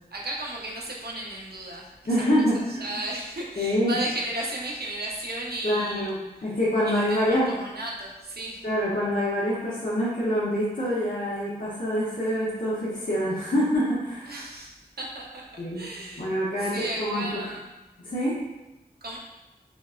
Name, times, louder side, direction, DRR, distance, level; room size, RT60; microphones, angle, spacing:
voice 1, 0.1-2.3 2.5-6.1 6.8-8.7 14.3-16.2 16.6-17.7 19.0-19.2, right 1 dB, 75° right, -2 dB, 0.6 m, -35 dB
voice 2, 2.1-3.0 3.6-4.0 5.6-6.1 6.4-7.5 8.6-14.4 15.6-15.8 16.2-17.4 18.1-18.4, equal, 60° left, -9 dB, 0.7 m, -26 dB
3.9 x 2.1 x 2.4 m, 1.1 s
wide cardioid pair, 50°, 16 cm